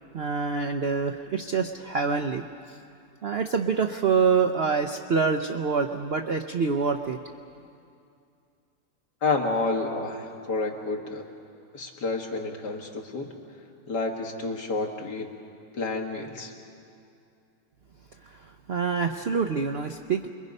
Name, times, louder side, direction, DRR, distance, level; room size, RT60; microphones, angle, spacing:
voice 1, 0.1-2.4 3.2-7.2 18.7-20.3, right 5 dB, 60° right, 5 dB, 0.6 m, -26 dB
voice 2, 9.2-11.2 11.7-13.3 13.9-15.3 15.7-16.5, left 3 dB, 70° left, 1 dB, 2.4 m, -29 dB
27.5 x 22.0 x 5.4 m, 2.5 s
omnidirectional pair, 1.9 m